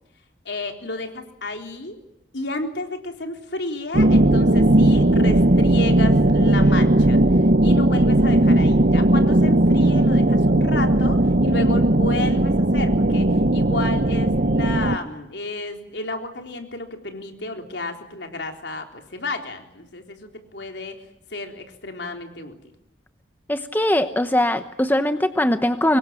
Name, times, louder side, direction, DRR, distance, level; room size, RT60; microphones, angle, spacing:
voice 1, 0.5-2.0 2.3-7.2 7.6-20.2 20.5-21.0 21.3-22.6, left 2 dB, 70° left, 4 dB, 3.8 m, -32 dB
sound 1, 3.9-15.0, right 1 dB, 50° right, 0.9 m, -17 dB
voice 2, 23.5-26.0, left 1 dB, 10° left, 9 dB, 0.9 m, -21 dB
25.0 x 22.0 x 9.1 m, 0.82 s
head